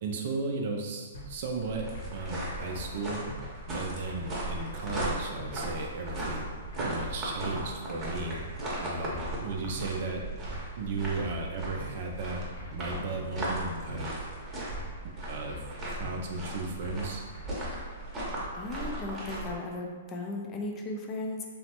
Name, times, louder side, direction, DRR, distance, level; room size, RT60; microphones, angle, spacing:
voice 1, 0.0-3.2 3.7-8.4 8.8-10.2 10.8-12.4 12.7-14.1 15.3-15.6 16.0-17.2, right 3 dB, 55° right, 2 dB, 0.4 m, -35 dB
sound 1, 1.1-1.3 1.9-2.2 2.5-2.9 3.3-3.4 4.1-4.3 4.6-5.0 5.4-5.5 6.2-6.5 6.7-7.1 7.5-7.6 8.3-8.6 8.8-9.2 9.6-9.8 10.4-10.7 11.0-11.4 11.8-11.9 12.6-12.8 13.1-13.5 13.9-14.0 14.7-15.0 15.2-15.6 16.0-16.1 16.8-17.1 17.3-17.7, left 2 dB, 75° left, 0.9 m, -43 dB
sound 2, 1.3-19.6, right 1 dB, 20° right, 0.8 m, -37 dB
voice 2, 18.5-21.5, left 2 dB, 25° left, 1 dB, 0.4 m, -36 dB
3.1 x 2.0 x 2.9 m, 1.5 s
hypercardioid pair, 125°, 0 cm